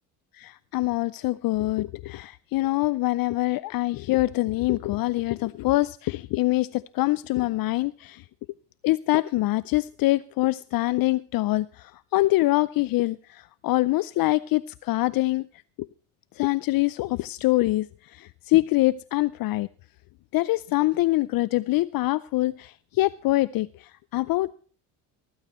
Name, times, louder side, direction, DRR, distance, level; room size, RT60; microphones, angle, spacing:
voice 1, 0.4-8.2 8.8-11.7 12.1-15.4 16.4-17.9 18.2-19.7 20.3-23.7 24.1-24.5, left 18 dB, 60° left, 0.5 m, -24 dB
17.0 x 15.5 x 3.1 m
supercardioid pair, 65°, 40 cm